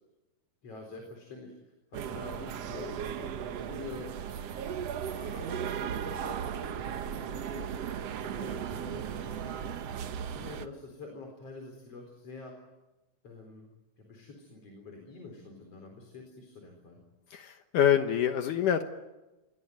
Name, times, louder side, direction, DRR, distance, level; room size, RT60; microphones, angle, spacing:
voice 1, 0.6-4.1 4.9-7.7 8.2-9.7 10.3-12.5 13.2-13.7 14.0-17.0, left 3 dB, 45° left, 2 dB, 5.1 m, -46 dB
sound 1, 1.9-10.7, right 8 dB, 60° right, 1.8 m, -36 dB
voice 2, 17.3-18.8, left 9 dB, 70° left, 6 dB, 2.6 m, -26 dB
27.5 x 21.5 x 9.4 m, 1.1 s
omnidirectional pair, 4.0 m